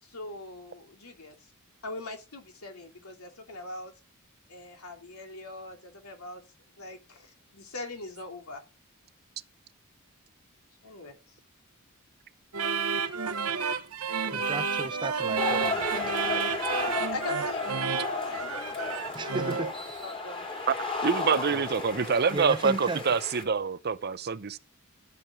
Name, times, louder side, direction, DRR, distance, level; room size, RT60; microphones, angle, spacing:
voice 1, 0.0-1.4 1.8-3.9 4.5-6.4 6.7-8.6 10.8-11.2 16.8-19.4 20.0-20.5 21.9-22.2, left 2 dB, 80° left, 2.8 m, -42 dB
sound 1, 12.5-19.8, right 5 dB, 90° right, 1.1 m, -30 dB
voice 2, 14.3-16.1 19.1-19.7 22.3-23.0, right 2 dB, 20° right, 0.8 m, -34 dB
sound 2, 15.4-23.4, left 3 dB, 25° left, 2.9 m, -34 dB
voice 3, 21.0-24.6, right 5 dB, 50° right, 0.7 m, -26 dB
13.5 x 7.2 x 6.2 m
head